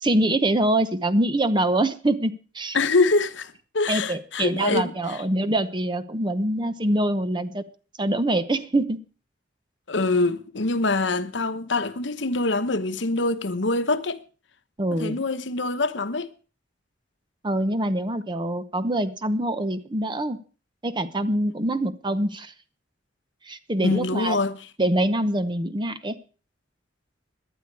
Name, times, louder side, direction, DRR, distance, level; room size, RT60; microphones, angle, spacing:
voice 1, 0.0-2.8 3.9-7.6 8.0-9.0 14.8-15.2 17.4-20.4 20.8-22.5 23.4-24.4 24.8-26.1, right 1 dB, 25° right, 0.9 m, -24 dB
voice 2, 2.7-5.2 9.9-14.2 14.9-16.3 23.8-24.6, left 3 dB, 70° left, 1.1 m, -24 dB
18.0 x 11.0 x 4.7 m
head